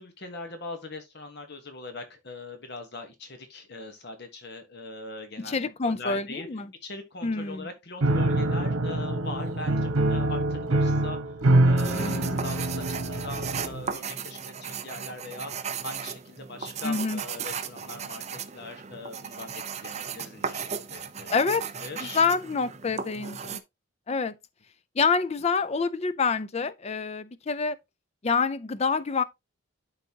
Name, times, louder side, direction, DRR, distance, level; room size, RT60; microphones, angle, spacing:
voice 1, 0.0-6.5 6.8-21.3 21.8-22.2, left 2 dB, 50° left, 1.2 m, -41 dB
voice 2, 5.4-6.7 7.2-7.7 11.9-12.4 16.8-17.2 21.3-21.6 22.0-23.6 24.1-24.3 25.0-27.8 28.2-29.2, left 4 dB, 30° left, 0.4 m, -27 dB
Piano, 8.0-13.9, right 2 dB, 90° right, 1.1 m, -25 dB
sound 1, 11.8-23.6, right 6 dB, 30° right, 0.5 m, -36 dB
12.0 x 4.0 x 2.8 m
head